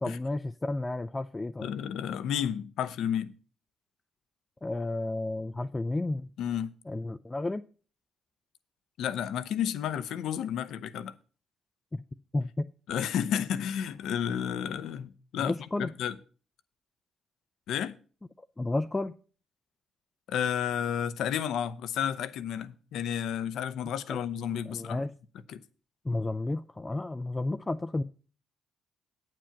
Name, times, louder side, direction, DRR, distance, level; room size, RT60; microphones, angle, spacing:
voice 1, 0.0-1.8 4.6-6.3 6.9-7.6 11.9-12.0 12.3-12.7 15.4-15.9 18.6-19.1 24.1-24.2 24.7-25.1 26.0-28.0, left 2 dB, 20° left, 0.4 m, -32 dB
voice 2, 1.6-3.3 6.4-6.7 9.0-11.1 12.9-15.5 15.8-16.1 17.7-18.0 20.3-25.0 25.5-25.6, left 9 dB, 80° left, 0.6 m, -31 dB
8.9 x 7.6 x 5.8 m
cardioid pair, 90°, 0 cm